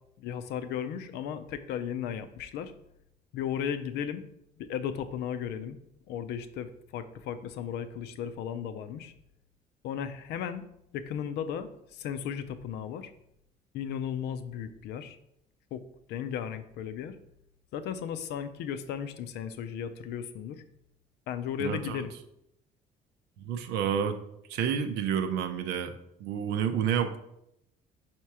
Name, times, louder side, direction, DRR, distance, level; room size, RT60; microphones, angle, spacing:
voice 1, 0.2-2.7 3.3-4.2 4.6-5.8 6.1-9.1 9.8-10.6 10.9-13.1 13.7-15.2 15.7-15.8 16.1-17.2 17.7-20.6 21.3-22.1, left 8 dB, 80° left, 11 dB, 0.6 m, -35 dB
voice 2, 21.6-22.0 23.4-24.2 24.5-27.2, right 8 dB, 90° right, 8 dB, 0.7 m, -30 dB
4.4 x 4.4 x 4.7 m, 0.78 s
cardioid pair, 110°, 17 cm